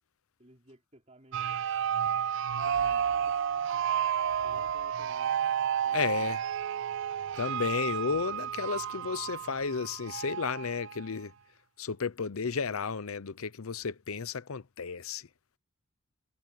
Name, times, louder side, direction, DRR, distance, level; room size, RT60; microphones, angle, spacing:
voice 1, 0.4-1.6 2.5-3.3 4.4-5.4 5.8-6.4, right 1 dB, 30° right, 4.7 m, -57 dB
sound 1, 1.3-11.1, right 8 dB, 60° right, 0.4 m, -31 dB
voice 2, 5.9-6.4 7.4-11.3 11.8-15.3, left 5 dB, 80° left, 0.7 m, -33 dB
head